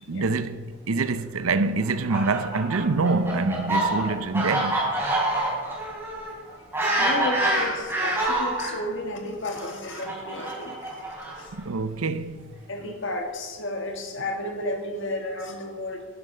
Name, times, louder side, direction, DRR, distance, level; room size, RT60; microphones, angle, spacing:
voice 1, 0.1-4.8 11.5-12.3, right 3 dB, 90° right, 0.7 m, -25 dB
Fowl, 1.8-8.7 9.5-11.6, right 1 dB, 10° right, 3.9 m, -26 dB
voice 2, 6.8-10.9 11.4-11.5 12.7-16.1, left 1 dB, 60° left, 1.8 m, -32 dB
11.5 x 11.5 x 5.5 m
head